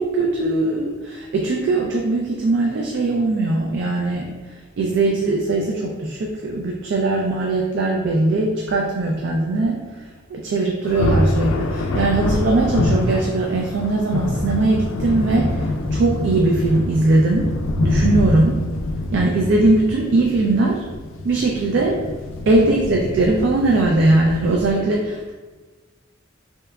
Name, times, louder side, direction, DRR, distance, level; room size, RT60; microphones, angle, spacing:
voice 1, 0.0-4.3 4.8-9.8 10.3-17.5 17.8-18.6 19.1-20.8 21.2-22.0 22.5-25.3, right 2 dB, 60° right, 0 dB, 0.3 m, -20 dB
Thunder, 10.8-24.7, left 1 dB, 80° left, 0.3 m, -25 dB
3.3 x 2.8 x 2.3 m, 1.3 s
head